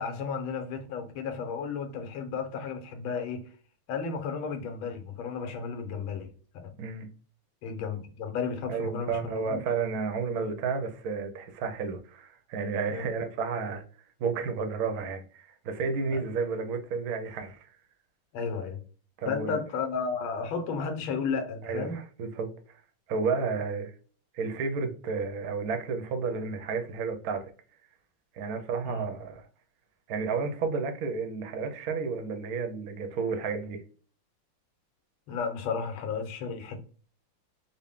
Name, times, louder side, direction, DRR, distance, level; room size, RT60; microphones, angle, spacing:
voice 1, 0.0-3.4 3.9-6.7 7.6-9.6 12.9-13.1 16.1-16.2 18.3-18.8 19.3-22.0 28.8-29.0 35.3-36.8, left 5 dB, 75° left, 1.6 m, -33 dB
voice 2, 8.7-13.8 14.2-17.7 19.2-19.6 21.6-22.8 23.1-23.9 24.3-27.5 28.3-29.5 30.1-33.8, right 5 dB, 70° right, 0.8 m, -32 dB
4.0 x 2.1 x 3.5 m
omnidirectional pair, 2.3 m